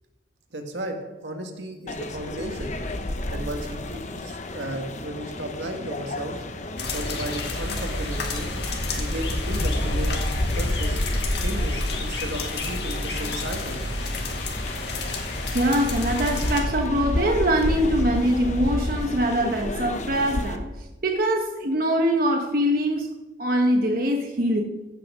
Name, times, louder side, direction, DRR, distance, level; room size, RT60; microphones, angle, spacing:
voice 1, 0.5-2.7 3.3-6.4 6.9-8.5 9.0-10.1 10.4-11.0 11.4-13.9, right 1 dB, 85° right, 3 dB, 1.8 m, -34 dB
sound 1, 1.9-20.6, left 1 dB, 45° left, 0.9 m, -30 dB
sound 2, 6.8-16.6, left 2 dB, 65° left, 2.0 m, -31 dB
voice 2, 15.0-20.6 21.0-23.1 23.4-24.6, equal, 55° right, 2 dB, 1.1 m, -23 dB
16.0 x 5.9 x 6.2 m, 1.1 s
head